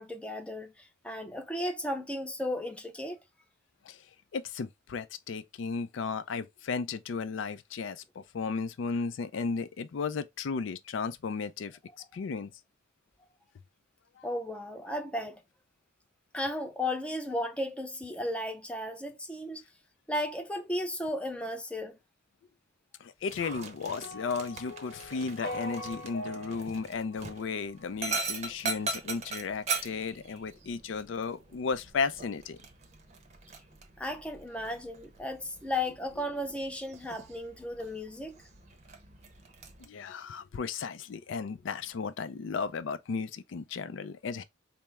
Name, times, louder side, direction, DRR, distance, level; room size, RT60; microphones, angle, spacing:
voice 1, 0.0-3.2 14.2-15.4 16.3-19.6 20.1-22.0 34.0-38.4, left 1 dB, 5° left, 0.4 m, -35 dB
voice 2, 4.3-11.8 12.1-12.5 14.2-14.3 23.0-32.6 39.8-44.4, left 5 dB, 75° left, 0.4 m, -34 dB
Dog, 23.2-39.8, right 4 dB, 35° right, 0.6 m, -41 dB
sound 1, 24.0-28.3, left 1 dB, 45° left, 0.9 m, -43 dB
4.3 x 2.0 x 3.4 m
head